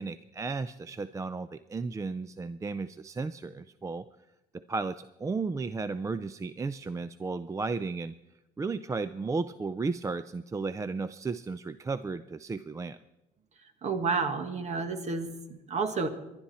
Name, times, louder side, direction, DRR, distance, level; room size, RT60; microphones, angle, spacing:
voice 1, 0.0-4.1 4.5-8.1 8.6-13.0, right 4 dB, 20° right, 14 dB, 0.4 m, -34 dB
voice 2, 13.8-16.1, right 4 dB, 40° right, 9 dB, 1.8 m, -30 dB
26.0 x 11.5 x 4.3 m, 0.93 s
cardioid pair, 110°, 17 cm